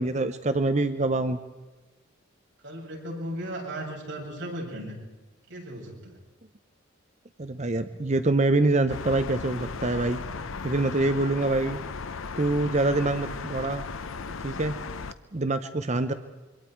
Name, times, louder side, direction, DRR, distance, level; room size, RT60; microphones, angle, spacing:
voice 1, 0.0-1.4 7.4-10.2 10.6-11.8 12.4-13.8 14.4-14.7 15.3-16.1, right 2 dB, 35° right, 9 dB, 0.7 m, -25 dB
voice 2, 2.6-5.0 5.5-6.2, right 1 dB, 60° right, -3 dB, 7.6 m, -36 dB
sound 1, 8.9-15.1, left 4 dB, 75° left, 0.7 m, -36 dB
26.5 x 23.5 x 4.6 m, 1.2 s
head